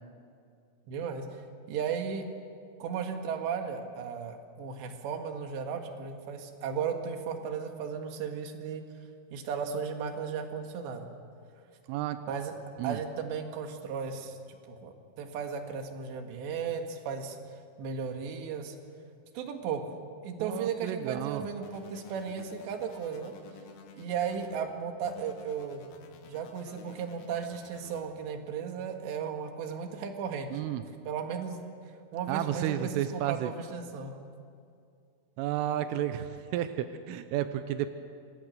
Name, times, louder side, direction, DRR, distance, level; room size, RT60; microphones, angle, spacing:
voice 1, 0.9-1.4 1.7-2.3 2.8-8.8 9.3-11.1 12.3-12.6 12.8-17.4 17.8-18.8 19.4-19.8 20.2-23.3 24.0-25.9 26.3-30.5 31.1-31.6 32.1-34.1, right 6 dB, 65° right, 5 dB, 3.8 m, -35 dB
voice 2, 11.9-12.3 12.8-13.0 20.4-21.4 30.5-30.9 32.3-33.5 35.4-37.9, right 12 dB, 90° right, 10 dB, 3.4 m, -32 dB
sound 1, 21.6-24.6 25.0-28.1, left 6 dB, 90° left, 4.3 m, -52 dB
27.0 x 23.0 x 6.5 m, 2.3 s
omnidirectional pair, 5.7 m